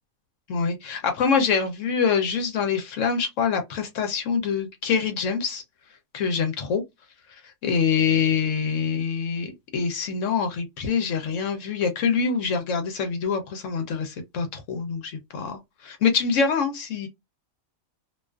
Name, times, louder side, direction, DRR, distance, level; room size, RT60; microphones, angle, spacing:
voice 1, 0.5-5.6 6.1-6.8 7.6-17.1, left 6 dB, 70° left, 0.9 m, -25 dB
2.4 x 2.3 x 2.2 m
omnidirectional pair, 1.4 m